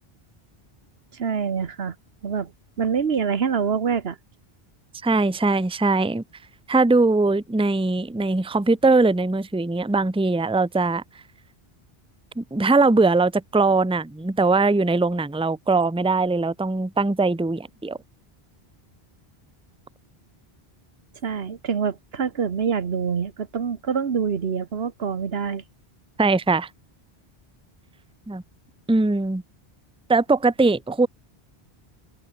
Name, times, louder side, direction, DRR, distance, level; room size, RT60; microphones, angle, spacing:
voice 1, 1.1-2.0 2.2-2.5 2.8-4.2 21.2-25.6, right 6 dB, 75° right, 1.4 m, -25 dB
voice 2, 5.0-6.2 6.7-11.0 12.4-18.0 26.2-26.7 28.3-28.4 28.9-29.4 30.1-31.1, right 3 dB, 5° right, 0.8 m, -21 dB
omnidirectional pair, 1.0 m